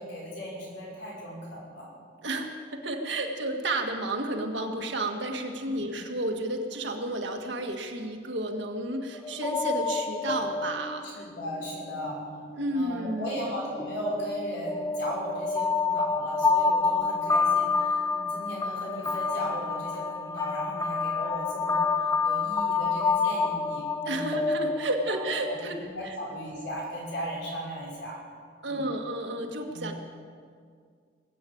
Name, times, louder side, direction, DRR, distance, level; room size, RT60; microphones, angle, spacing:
voice 1, 0.0-1.9 5.6-6.0 11.0-12.2 12.7-21.8 22.2-24.5 25.1-25.2 25.8-28.2 28.6-29.0 29.7-30.0, equal, 90° left, -4 dB, 5.7 m, -37 dB
voice 2, 2.2-11.3 12.5-13.4 24.1-26.2 28.6-29.9, right 1 dB, 65° right, 3 dB, 1.8 m, -32 dB
sound 1, 9.1-12.7 13.4-25.9, left 4 dB, 15° left, 0.7 m, -28 dB
19.5 x 8.7 x 8.6 m, 2.1 s
head